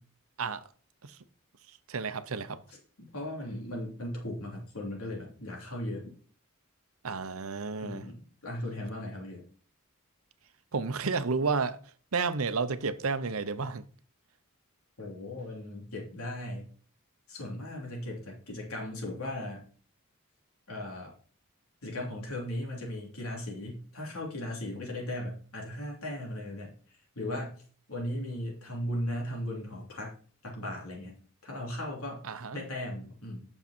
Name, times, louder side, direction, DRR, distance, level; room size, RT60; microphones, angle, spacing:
voice 1, 1.9-2.6 7.0-8.0 10.7-11.8 12.1-13.8 32.2-32.6, right 4 dB, 80° right, 0.8 m, -31 dB
voice 2, 3.1-6.1 7.8-9.4 15.0-16.7 17.3-19.6 20.7-21.1 21.8-26.7 27.2-27.6 27.9-30.1 30.4-31.1 31.4-32.2 32.5-33.4, left 1 dB, 90° left, 3.5 m, -37 dB
8.4 x 6.7 x 4.4 m
head